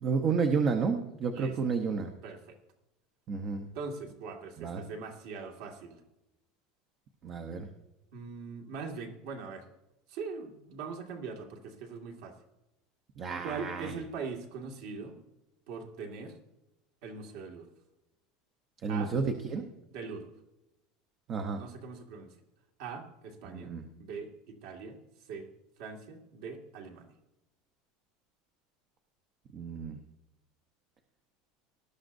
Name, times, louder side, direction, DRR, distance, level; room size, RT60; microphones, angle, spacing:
voice 1, 0.0-2.1 3.3-3.7 4.6-4.8 7.2-7.7 13.2-13.9 18.8-19.7 21.3-21.6 23.4-23.8 29.5-30.0, right 5 dB, 25° right, 6 dB, 0.8 m, -31 dB
voice 2, 2.2-2.6 3.7-6.0 8.1-9.7 10.1-12.3 13.4-15.2 15.7-16.3 17.0-17.7 18.9-19.1 19.9-20.3 21.6-22.3 22.8-23.7 24.0-25.0 25.3-25.5 25.8-27.1, right 5 dB, 55° right, 3 dB, 1.9 m, -41 dB
19.5 x 12.0 x 2.6 m, 0.93 s
cardioid pair, 180°, 0 cm